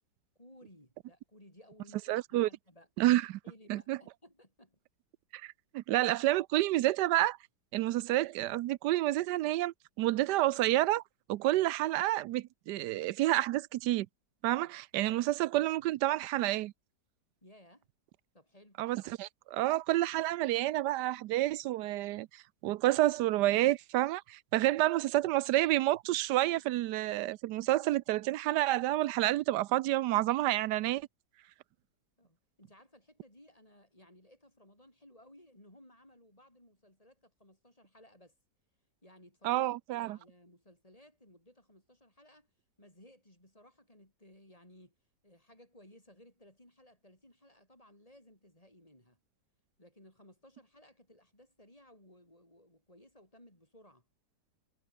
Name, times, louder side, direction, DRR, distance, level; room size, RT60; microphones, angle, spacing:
voice 1, 0.4-2.9 3.4-4.8 17.4-17.9 18.3-18.8 32.2-38.3 39.0-42.5 42.8-45.0 45.2-49.2 49.8-54.1, left 1 dB, 20° left, 5.8 m, -59 dB
voice 2, 2.1-2.5 3.0-3.4 3.7-4.0 5.3-7.4 7.7-11.0 11.3-14.1 14.4-16.7 18.8-31.1 39.4-40.2, right 16 dB, 75° right, 1.2 m, -29 dB
omnidirectional pair, 1.9 m